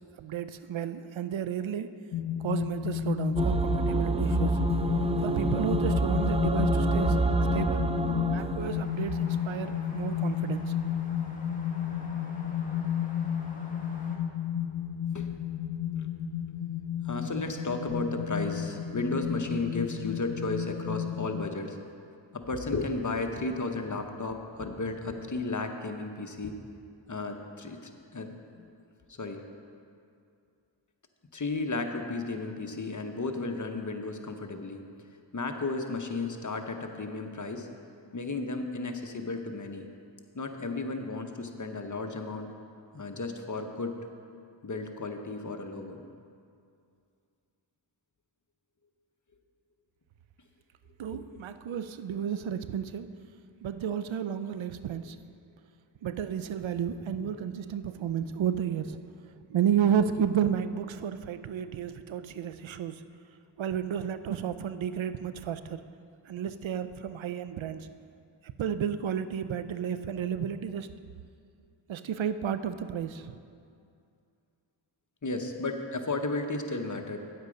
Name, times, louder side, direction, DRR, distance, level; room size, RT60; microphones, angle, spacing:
voice 1, 0.0-1.9 2.4-4.6 5.2-7.2 7.5-7.9 8.3-10.6 51.0-53.1 53.6-55.2 56.0-59.0 59.5-63.0 63.6-65.8 66.3-67.9 68.6-70.9 71.9-73.4, right 8 dB, 80° right, 12 dB, 0.5 m, -32 dB
sound 1, 2.1-21.5, left 9 dB, 85° left, 0.6 m, -32 dB
sound 2, 3.4-8.7, right 3 dB, 15° right, 0.4 m, -27 dB
sound 3, 8.6-14.2, left 1 dB, 15° left, 1.9 m, -49 dB
voice 2, 17.0-21.9 22.3-26.6 27.1-28.7 29.1-29.4 31.3-34.8 35.3-37.7 38.1-39.9 40.3-42.5 42.9-43.9 44.6-46.0 57.1-57.4 75.2-77.2, left 3 dB, 40° left, 5 dB, 1.0 m, -34 dB
9.5 x 8.1 x 5.2 m, 2.4 s
cardioid pair, 45°, 46 cm